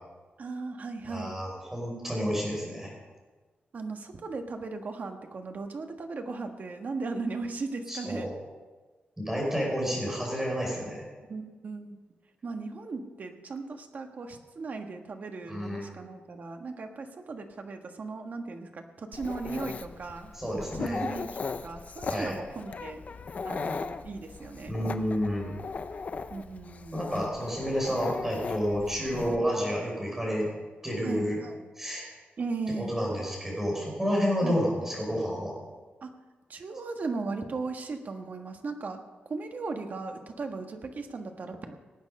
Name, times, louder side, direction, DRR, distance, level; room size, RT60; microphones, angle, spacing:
voice 1, 0.4-1.4 3.7-8.3 11.3-12.0 12.4-23.0 23.4-24.8 26.3-27.0 31.0-31.7 32.4-32.9 34.4-34.6 36.0-36.1 36.5-39.0 39.3-41.7, right 3 dB, 50° right, 5 dB, 1.4 m, -37 dB
voice 2, 1.1-2.9 7.9-8.3 9.2-11.0 15.5-15.9 20.3-21.0 22.1-22.3 24.7-25.5 26.9-30.5 30.8-31.4 31.8-32.1 32.7-35.6, equal, 10° right, -2 dB, 5.4 m, -30 dB
Dog, 19.1-29.4, left 4 dB, 45° left, 0.6 m, -38 dB
18.5 x 9.1 x 5.5 m, 1.3 s
wide cardioid pair, 145°, 4 cm